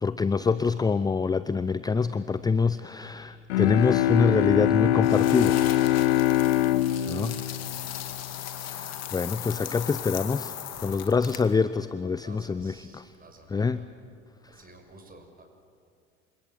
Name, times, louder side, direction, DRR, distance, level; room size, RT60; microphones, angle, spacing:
voice 1, 0.0-5.7 7.1-7.4 8.6-10.6 10.8-13.1 13.5-13.8, left 5 dB, 10° left, 15 dB, 0.6 m, -25 dB
Bowed string instrument, 3.5-8.6, left 13 dB, 65° left, 1.4 m, -24 dB
sound 1, 5.0-11.6, left 10 dB, 45° left, 2.2 m, -37 dB
voice 2, 7.8-8.2 10.7-11.1 12.2-13.9 14.5-15.4, right 2 dB, 25° right, 5 dB, 6.4 m, -52 dB
28.0 x 25.5 x 7.7 m, 2.2 s
figure-of-eight pair, 65°, 36 cm